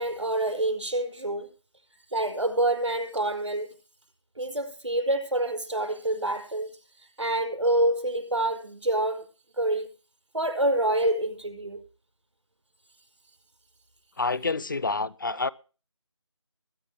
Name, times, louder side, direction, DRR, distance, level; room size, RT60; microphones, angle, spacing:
voice 1, 0.0-1.5 2.1-3.7 4.4-6.7 7.0-9.2 9.6-9.9 10.3-11.8, right 1 dB, 85° right, 5.0 m, -27 dB
voice 2, 14.2-15.5, left 3 dB, 45° left, 0.5 m, -28 dB
21.5 x 9.9 x 3.4 m
figure-of-eight pair, 165°, 15 cm